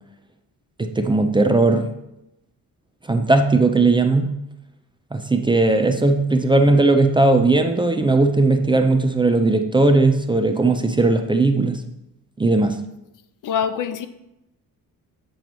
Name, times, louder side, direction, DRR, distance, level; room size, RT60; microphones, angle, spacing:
voice 1, 0.8-1.9 3.1-4.4 5.1-11.8 12.4-12.8, right 2 dB, 15° right, 6 dB, 0.4 m, -18 dB
voice 2, 13.4-14.1, left 8 dB, 65° left, 11 dB, 0.6 m, -24 dB
7.7 x 4.5 x 5.3 m, 0.88 s
wide cardioid pair, 155°, 34 cm